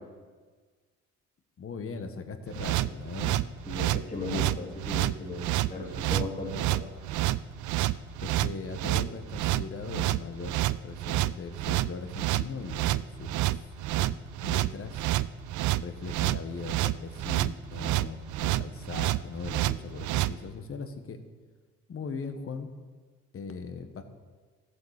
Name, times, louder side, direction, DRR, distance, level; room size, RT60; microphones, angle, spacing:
voice 1, 1.6-3.4 8.2-10.6 10.8-13.6 14.0-15.1 15.8-21.2 21.9-22.7 23.3-24.0, left 5 dB, 45° left, 8 dB, 1.4 m, -39 dB
sound 1, 2.5-20.3, right 16 dB, 80° right, 0.5 m, -28 dB
voice 2, 3.7-6.8, left 2 dB, 25° left, -2 dB, 2.7 m, -36 dB
13.5 x 7.8 x 6.5 m, 1.4 s
cardioid pair, 90°, 30 cm